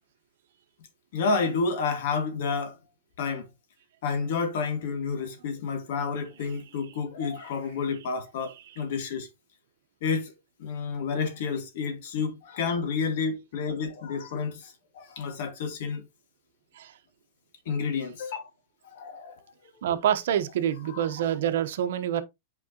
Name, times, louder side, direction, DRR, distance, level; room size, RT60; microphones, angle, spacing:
voice 1, 1.1-2.8 3.2-3.5 4.0-9.3 10.0-10.3 10.6-16.0 17.7-18.4 18.9-19.4 20.9-21.1, left 5 dB, 60° left, 2.0 m, -30 dB
voice 2, 19.8-22.2, right 10 dB, 70° right, 1.0 m, -26 dB
8.4 x 4.8 x 2.9 m
supercardioid pair, 155°, 0 cm